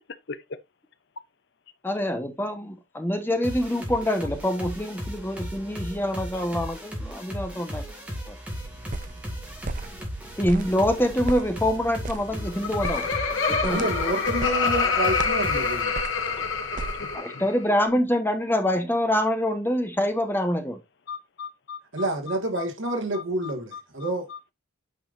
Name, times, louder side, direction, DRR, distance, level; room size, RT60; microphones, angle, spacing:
voice 1, 1.8-7.8 8.3-8.4 10.4-13.1 13.5-13.9 17.1-20.8, left 1 dB, 10° left, 1.2 m, -25 dB
sound 1, 3.4-15.8, equal, 5° right, 2.0 m, -36 dB
sound 2, 8.5-17.2, right 3 dB, 40° right, 0.5 m, -38 dB
Laughter, 12.3-17.6, left 5 dB, 85° left, 1.9 m, -26 dB
voice 2, 13.7-16.0 21.9-24.3, right 1 dB, 80° right, 1.8 m, -28 dB
voice 3, 21.1-24.5, left 6 dB, 60° left, 0.7 m, -40 dB
8.8 x 5.2 x 2.6 m
head